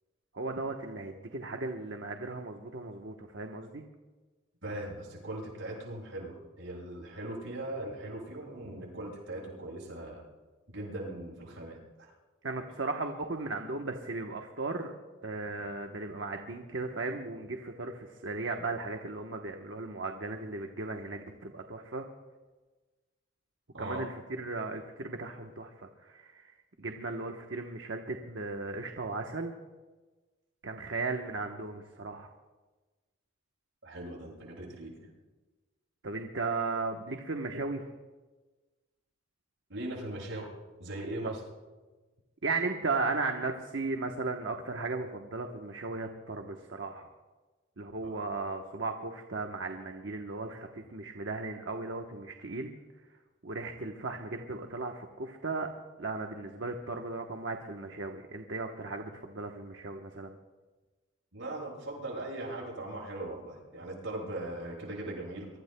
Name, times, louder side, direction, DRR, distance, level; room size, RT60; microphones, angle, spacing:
voice 1, 0.3-3.8 12.4-14.9 15.2-22.1 23.8-29.5 30.6-32.3 36.0-37.9 41.2-41.3 42.4-47.1 47.8-52.7 53.4-55.7 56.0-60.4, right 3 dB, 65° right, 3 dB, 1.1 m, -36 dB
voice 2, 4.6-10.2 10.7-12.1 23.7-24.0 33.8-35.1 39.7-40.5 40.8-41.4 48.0-48.1 61.3-65.5, right 1 dB, 80° right, -3 dB, 7.2 m, -39 dB
25.0 x 23.0 x 2.2 m, 1.2 s
head